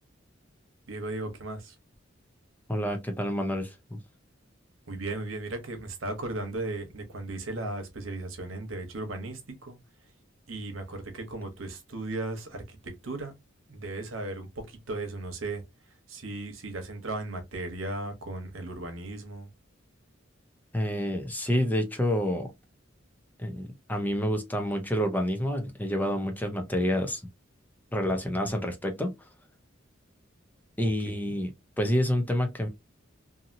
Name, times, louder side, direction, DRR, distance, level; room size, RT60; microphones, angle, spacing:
voice 1, 0.9-1.7 4.9-9.8 10.5-13.3 13.7-15.6 16.1-19.5 31.0-31.4, right 2 dB, 90° right, 1.0 m, -36 dB
voice 2, 2.7-4.0 20.7-22.5 23.4-27.2 27.9-29.1 30.8-31.5 31.8-32.7, equal, 10° left, 0.6 m, -28 dB
2.7 x 2.7 x 2.6 m
head